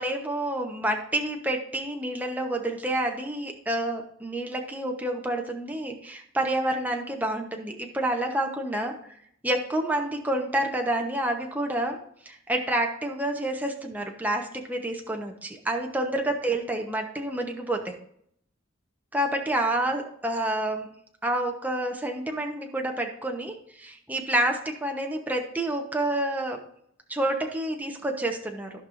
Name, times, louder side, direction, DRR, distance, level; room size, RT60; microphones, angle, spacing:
voice 1, 0.0-9.0 9.4-12.0 12.2-17.9 19.1-20.9 21.2-26.6 27.1-28.7, right 1 dB, 10° right, 2 dB, 0.9 m, -28 dB
15.0 x 5.4 x 2.6 m, 0.67 s
head